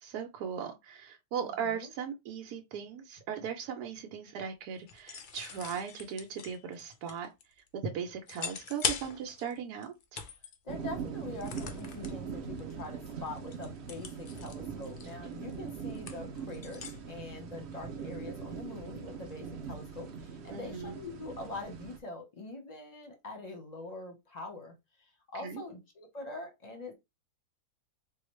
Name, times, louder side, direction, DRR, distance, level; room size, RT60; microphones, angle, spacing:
voice 1, 0.0-7.3 7.7-10.2 20.5-21.0 25.3-25.6, right 7 dB, 80° right, 1.1 m, -38 dB
voice 2, 1.4-1.9 10.6-24.7 25.3-26.9, left 2 dB, 35° left, 0.8 m, -44 dB
sound 1, 4.9-7.7 8.3-9.6 9.8-10.6 11.4-12.1 12.6-12.8 13.1-17.0, left 6 dB, 75° left, 0.4 m, -40 dB
sound 2, 10.7-22.0, right 6 dB, 60° right, 0.7 m, -41 dB
4.2 x 2.3 x 3.1 m
omnidirectional pair, 1.7 m